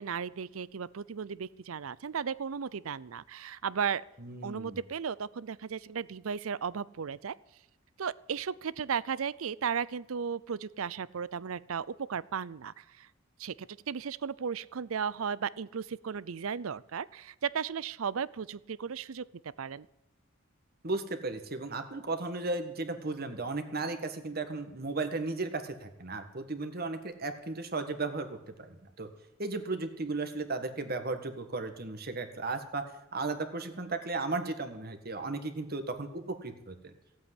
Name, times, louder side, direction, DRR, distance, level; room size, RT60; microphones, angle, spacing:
voice 1, 0.0-4.0 4.4-7.3 8.0-13.1 13.4-19.2 19.6-19.9, right 6 dB, 85° right, 20 dB, 0.5 m, -35 dB
voice 2, 4.2-4.8 20.8-29.1 29.4-32.8 33.1-36.9, right 3 dB, 45° right, 8 dB, 1.7 m, -35 dB
16.0 x 8.5 x 9.9 m, 0.93 s
head